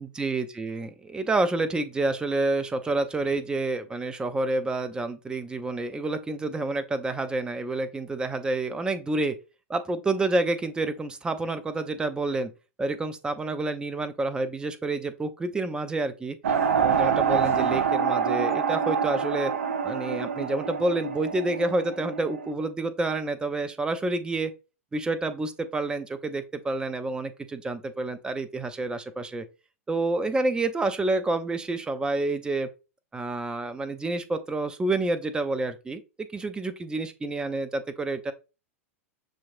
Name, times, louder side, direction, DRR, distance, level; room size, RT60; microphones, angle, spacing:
voice 1, 0.0-9.3 9.7-12.5 12.8-16.4 16.8-19.5 19.8-24.5 24.9-29.4 29.9-32.7 33.1-36.0 36.3-38.3, right 2 dB, 10° right, 0.5 m, -28 dB
sound 1, 16.4-22.5, right 6 dB, 70° right, 0.5 m, -26 dB
6.2 x 2.9 x 2.5 m
figure-of-eight pair, 95°, 8 cm